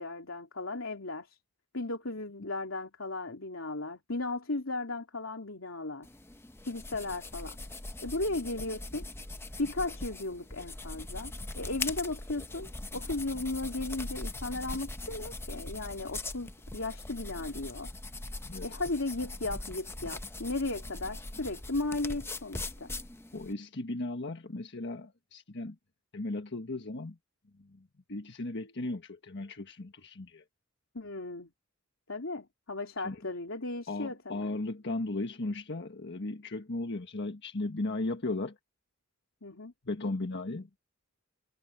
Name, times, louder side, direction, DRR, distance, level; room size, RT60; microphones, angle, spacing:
voice 1, 0.0-1.4 1.7-6.1 6.6-7.6 8.0-9.1 9.6-17.9 18.6-22.9 30.9-31.5 32.1-34.6 39.4-39.7, left 2 dB, 80° left, 3.1 m, -36 dB
sound 1, 6.0-23.5, left 2 dB, 10° left, 0.8 m, -41 dB
voice 2, 23.3-25.7 26.1-27.2 28.1-30.4 33.0-33.2 33.9-38.5 39.9-40.7, left 2 dB, 60° left, 1.5 m, -36 dB
head